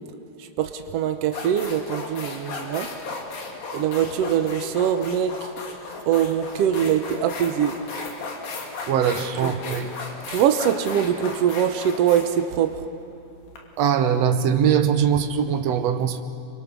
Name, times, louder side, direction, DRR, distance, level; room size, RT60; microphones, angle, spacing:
voice 1, 0.6-2.9 3.7-5.3 6.1-7.7 9.4-9.5 10.3-12.7, right 9 dB, 85° right, 7 dB, 1.3 m, -22 dB
sound 1, 0.7-0.8 1.3-13.6, left 4 dB, 75° left, 4.3 m, -35 dB
voice 2, 8.9-9.9 13.8-16.2, right 8 dB, 70° right, 8 dB, 1.6 m, -21 dB
30.0 x 24.5 x 6.2 m, 2.8 s
omnidirectional pair, 4.2 m